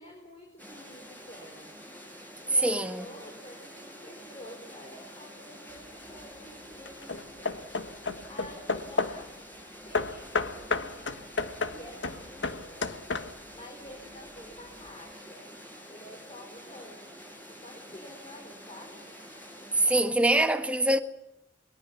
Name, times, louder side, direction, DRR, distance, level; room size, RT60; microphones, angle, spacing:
voice 1, 0.0-1.7 2.4-9.4 9.8-11.2 11.7-12.9 13.5-15.6 15.9-19.1, left 1 dB, 30° left, 4.6 m, -49 dB
sound 1, 0.6-20.0, equal, 10° left, 7.9 m, -48 dB
voice 2, 2.6-3.0 19.8-21.0, right 1 dB, 5° right, 1.7 m, -24 dB
Hammer / Wood, 5.7-6.2 6.9-9.3 9.9-13.6, left 3 dB, 70° left, 1.4 m, -32 dB
22.0 x 22.0 x 7.2 m
head